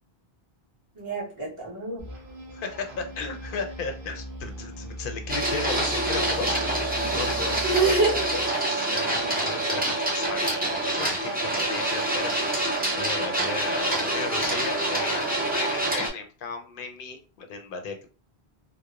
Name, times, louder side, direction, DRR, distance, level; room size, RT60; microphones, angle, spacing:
voice 1, 0.9-2.0 7.6-8.4, right 3 dB, 30° right, -5 dB, 1.1 m, -26 dB
sound 1, 2.0-8.5, equal, 65° right, 0.9 m, -39 dB
voice 2, 2.5-7.9 8.6-18.1, left 4 dB, 65° left, 5 dB, 0.7 m, -36 dB
Printer, 5.3-16.1, right 1 dB, 15° right, 0.4 m, -26 dB
2.9 x 2.0 x 2.3 m, 0.35 s
omnidirectional pair, 1.1 m